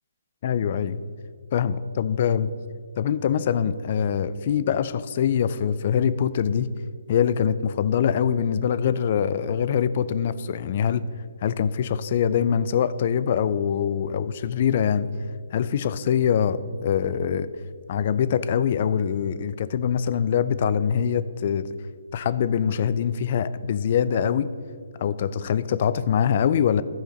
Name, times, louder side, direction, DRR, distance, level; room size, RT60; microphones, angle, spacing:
voice 1, 0.4-1.0 1.5-2.5 3.0-6.7 7.1-11.0 11.4-15.1 15.5-17.5 17.9-21.7 22.1-24.5 25.0-26.8, left 8 dB, 45° left, 14 dB, 0.4 m, -23 dB
12.0 x 4.9 x 5.2 m, 2.2 s
hypercardioid pair, 145°, 0 cm